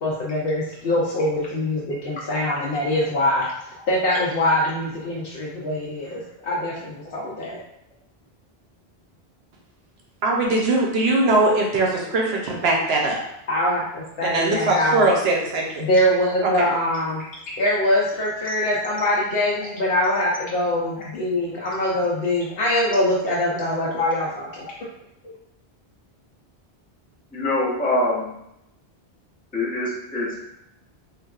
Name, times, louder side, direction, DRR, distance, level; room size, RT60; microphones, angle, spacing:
voice 1, 0.0-3.4 3.9-7.6 13.5-15.1 15.8-17.2 17.6-24.7, left 1 dB, 70° left, -5 dB, 0.7 m, -23 dB
voice 2, 10.2-13.2 14.2-15.8 16.4-16.7, right 2 dB, 75° right, -1 dB, 0.9 m, -21 dB
voice 3, 27.3-28.3 29.5-30.4, left 1 dB, 10° left, -7 dB, 0.5 m, -24 dB
3.3 x 2.3 x 2.3 m, 0.82 s
omnidirectional pair, 1.1 m